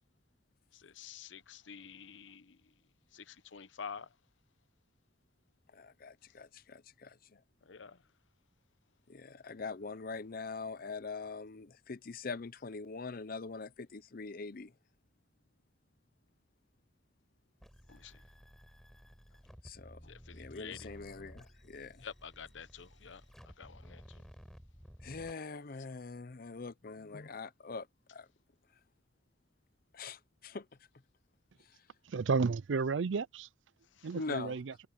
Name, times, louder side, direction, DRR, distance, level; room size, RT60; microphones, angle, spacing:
voice 1, 0.7-2.6 3.1-4.1 7.6-8.0 17.9-18.2 20.1-20.9 22.0-23.2 23.6-24.0 34.0-34.1, left 6 dB, 80° left, 0.8 m, -48 dB
voice 2, 5.7-7.4 9.1-14.7 19.6-22.1 25.0-28.3 29.9-30.7 34.1-34.6, left 4 dB, 50° left, 0.7 m, -43 dB
sound 1, 17.6-25.3, equal, ahead, 4.4 m, -55 dB
voice 3, 32.1-33.5 34.0-34.7, right 4 dB, 80° right, 0.5 m, -32 dB
head